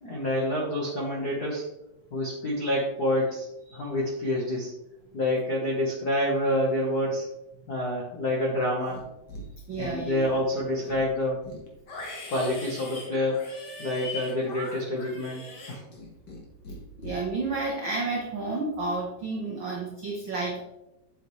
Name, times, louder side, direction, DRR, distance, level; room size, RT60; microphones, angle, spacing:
voice 1, 0.0-1.6 2.1-3.5 3.7-4.7 5.1-7.3 7.7-9.0 9.8-11.4 12.3-15.4 15.7-15.8, left 1 dB, 80° left, -3 dB, 0.8 m, -27 dB
Livestock farm animals working animals, 8.8-9.4 9.7-10.4 10.8-16.4 16.6-17.2, left 2 dB, 45° left, 1.4 m, -41 dB
voice 2, 9.7-10.2 17.0-20.6, right 3 dB, 80° right, -1 dB, 1.1 m, -31 dB
8.3 x 6.7 x 3.2 m, 0.95 s
omnidirectional pair, 3.9 m